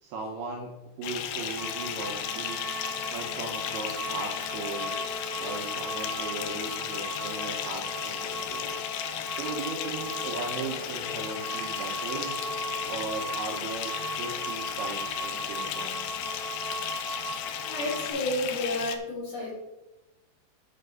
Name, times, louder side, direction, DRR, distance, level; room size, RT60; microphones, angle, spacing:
voice 1, 0.0-2.6 3.1-4.9 5.4-8.8 9.3-12.4 12.9-16.1, right 4 dB, 75° right, 0 dB, 2.4 m, -38 dB
Bathtub (filling or washing) / Fill (with liquid), 1.0-19.0, left 10 dB, 80° left, 2.6 m, -35 dB
sound 1, 1.6-18.1, right 1 dB, 60° right, 2.0 m, -38 dB
voice 2, 17.6-19.5, left 1 dB, 55° left, -3 dB, 2.7 m, -31 dB
6.8 x 5.9 x 6.6 m, 1.0 s
omnidirectional pair, 5.5 m